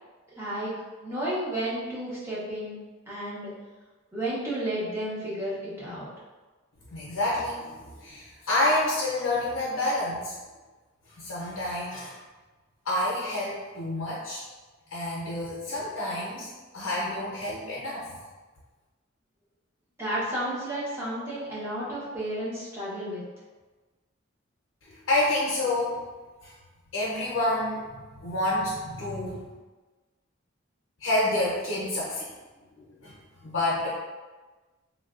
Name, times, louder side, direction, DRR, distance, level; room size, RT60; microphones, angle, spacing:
voice 1, 0.3-0.7 1.0-2.8 3.1-3.5 4.1-6.1 20.0-23.2, right 1 dB, 15° right, -9 dB, 0.8 m, -32 dB
voice 2, 6.9-10.4 11.2-12.2 12.8-14.4 14.9-18.1 24.9-26.0 26.4-26.5 26.9-29.5 31.0-32.3 32.8-33.2 33.4-33.9, left 1 dB, 85° left, -7 dB, 0.6 m, -28 dB
3.0 x 2.2 x 2.4 m, 1.3 s
head